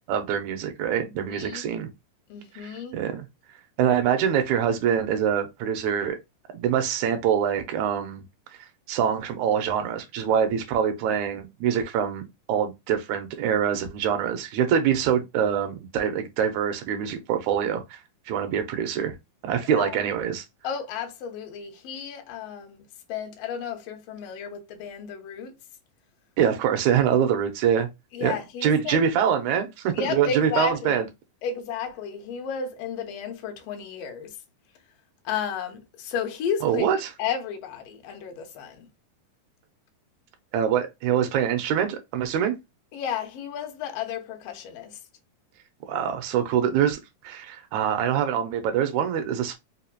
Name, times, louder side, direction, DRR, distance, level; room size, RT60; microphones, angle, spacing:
voice 1, 0.1-1.9 2.5-3.3 3.8-6.2 6.5-8.2 8.9-12.2 12.5-18.0 18.3-19.1 19.4-20.4 26.4-27.9 28.2-31.1 36.6-37.0 40.5-42.5 45.9-47.0 47.2-49.5, right 8 dB, 75° right, 2.0 m, -24 dB
voice 2, 1.0-1.6 2.3-3.0 19.7-20.0 20.6-25.6 28.1-29.0 29.9-31.0 31.4-34.4 35.2-38.9 42.9-45.0, left 7 dB, 70° left, 1.6 m, -33 dB
4.9 x 2.8 x 2.2 m
omnidirectional pair, 3.7 m